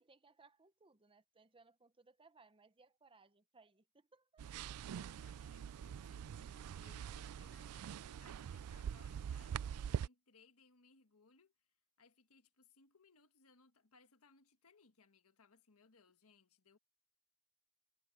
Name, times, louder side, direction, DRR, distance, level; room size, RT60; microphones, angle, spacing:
voice 1, 0.0-4.7 5.9-6.2, right 4 dB, 25° right, 0.9 m, -67 dB
sound 1, 4.4-10.1, right 8 dB, 90° right, 0.3 m, -44 dB
voice 2, 4.9-11.5 12.0-16.8, left 4 dB, 75° left, 1.5 m, -68 dB
head